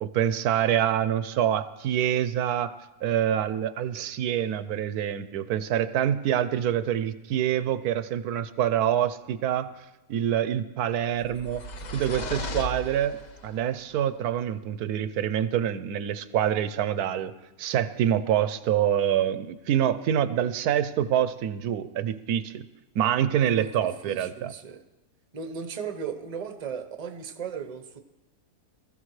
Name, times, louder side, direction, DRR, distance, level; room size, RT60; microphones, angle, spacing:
voice 1, 0.0-2.7 3.0-9.7 10.1-11.6 11.9-13.2 13.4-17.3 17.6-22.6 22.9-24.5, right 10 dB, 75° right, 13 dB, 1.1 m, -26 dB
sound 1, 11.1-13.6, left 1 dB, 60° left, 0.4 m, -36 dB
voice 2, 24.0-24.8 25.3-28.0, right 6 dB, 30° right, 7 dB, 0.8 m, -36 dB
20.5 x 14.0 x 3.2 m, 1.0 s
omnidirectional pair, 1.7 m